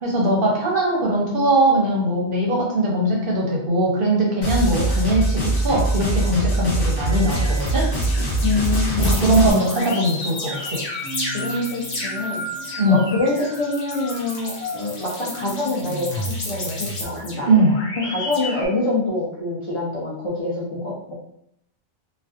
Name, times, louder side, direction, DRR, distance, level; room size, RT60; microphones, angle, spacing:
voice 1, 0.0-7.9 9.0-10.8 12.8-13.0 17.5-17.8, right 1 dB, 55° right, -2 dB, 0.7 m, -20 dB
sound 1, 4.4-9.5, right 2 dB, 35° left, 0.7 m, -22 dB
sound 2, 6.0-6.5 7.1-18.7, left 1 dB, 85° left, 1.1 m, -31 dB
voice 2, 8.4-9.1 11.3-17.5 18.1-21.1, left 2 dB, 55° left, -6 dB, 0.3 m, -26 dB
2.4 x 2.2 x 2.4 m, 0.75 s
omnidirectional pair, 1.2 m